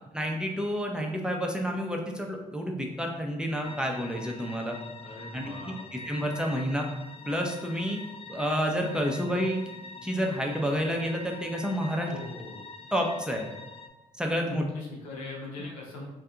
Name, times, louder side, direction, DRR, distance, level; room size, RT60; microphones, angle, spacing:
voice 1, 0.1-4.8 5.3-6.9 7.3-8.0 8.3-9.6 10.0-12.1 12.9-13.4 14.2-14.6, equal, 5° right, 1 dB, 0.6 m, -29 dB
sound 1, 3.6-13.9, left 3 dB, 35° left, 0.4 m, -45 dB
voice 2, 5.0-6.1 12.0-12.6 14.4-16.0, left 2 dB, 85° left, -3 dB, 0.7 m, -40 dB
2.6 x 2.3 x 3.6 m, 1.0 s
hypercardioid pair, 45°, 17 cm